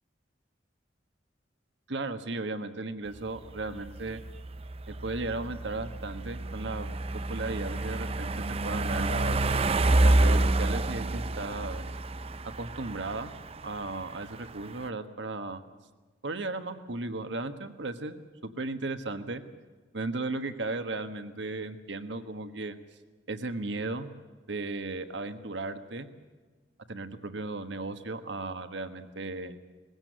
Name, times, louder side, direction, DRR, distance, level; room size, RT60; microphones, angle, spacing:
voice 1, 1.9-4.2 4.9-6.9 7.3-8.3 8.6-9.4 10.0-11.8 12.6-13.3 13.6-15.6 16.2-18.2 18.4-19.4 19.9-22.7 23.3-24.1 24.5-26.1 26.9-29.6, right 2 dB, 75° right, 9 dB, 1.4 m, -35 dB
sound 1, 3.2-14.9, right 2 dB, 35° right, 0.6 m, -29 dB
21.0 x 16.0 x 9.1 m, 1.4 s
head